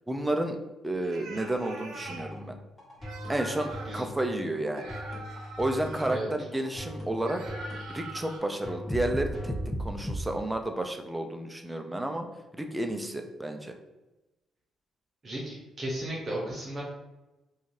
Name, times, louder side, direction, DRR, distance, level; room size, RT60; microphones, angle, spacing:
voice 1, 0.1-0.6 0.8-2.6 3.3-4.9 5.6-7.4 7.9-12.3 12.5-13.7, right 1 dB, 10° right, 4 dB, 0.4 m, -31 dB
sound 1, 1.0-2.3 3.0-4.0 4.7-6.2 7.2-8.4, right 2 dB, 85° right, 0.6 m, -43 dB
sound 2, 2.0-10.2, equal, 25° left, 1.3 m, -38 dB
voice 2, 15.2-16.8, right 1 dB, 40° right, -4 dB, 0.8 m, -34 dB
2.5 x 2.3 x 3.1 m, 1.0 s
cardioid pair, 90°, 0 cm